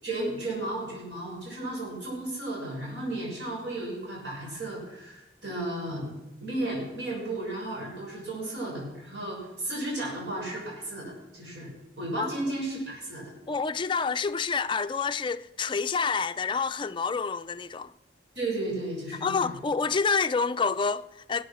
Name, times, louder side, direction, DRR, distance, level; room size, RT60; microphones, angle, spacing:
voice 1, 0.0-6.1 6.4-11.7 12.0-13.3 18.3-19.5, right 1 dB, 85° right, 6.5 m, -34 dB
voice 2, 13.5-17.9 19.2-21.4, left 5 dB, 30° left, 0.4 m, -28 dB
20.0 x 8.6 x 6.3 m
head